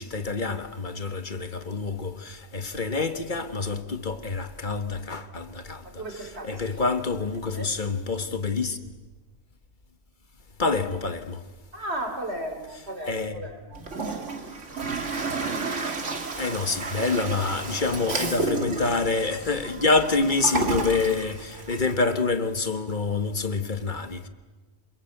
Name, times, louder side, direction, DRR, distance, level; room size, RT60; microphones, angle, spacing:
voice 1, 0.0-6.0 6.4-8.8 10.6-11.4 13.0-13.4 16.4-24.3, left 3 dB, 40° left, 1.5 m, -27 dB
voice 2, 5.8-6.6 7.3-7.7 11.7-14.6, right 1 dB, 60° right, 3.4 m, -36 dB
Toilet flush, 13.7-21.9, right 3 dB, 75° right, 2.4 m, -31 dB
27.0 x 23.0 x 7.9 m
omnidirectional pair, 1.2 m